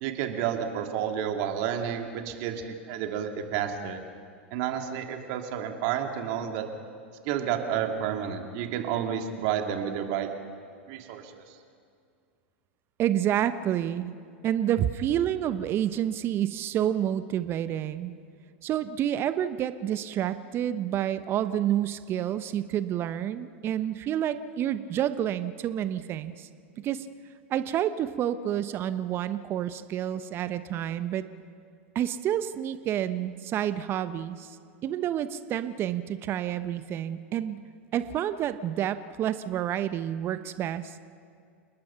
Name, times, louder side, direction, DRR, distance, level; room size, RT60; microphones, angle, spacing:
voice 1, 0.0-4.0 4.5-6.6 7.2-10.3 10.9-11.4, right 9 dB, 55° right, 4 dB, 2.7 m, -30 dB
voice 2, 13.0-14.1 14.4-18.1 18.6-26.5 26.8-27.1 27.5-31.2 31.9-34.6 34.8-37.6 37.9-41.1, right 11 dB, 35° right, 12 dB, 1.0 m, -29 dB
29.5 x 20.0 x 5.8 m, 2.3 s
hypercardioid pair, 95°, 7 cm